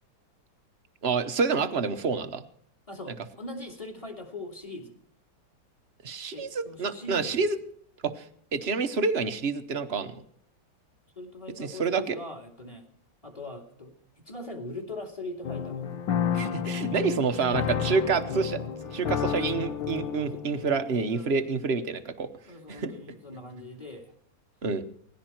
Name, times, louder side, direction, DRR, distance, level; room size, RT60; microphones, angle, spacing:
voice 1, 1.0-2.4 6.0-7.6 8.0-8.2 8.5-10.2 11.6-12.2 16.3-18.6 18.9-22.3 22.7-22.9 24.6-24.8, right 5 dB, 40° right, 10 dB, 1.1 m, -28 dB
voice 2, 2.9-5.0 6.3-7.4 11.2-12.9 13.2-13.9 14.2-15.9 21.1-21.5 22.5-24.1, left 2 dB, 15° left, 4 dB, 2.6 m, -41 dB
sound 1, 15.4-21.1, left 8 dB, 85° left, 1.8 m, -31 dB
19.0 x 16.0 x 4.5 m, 0.66 s
omnidirectional pair, 2.0 m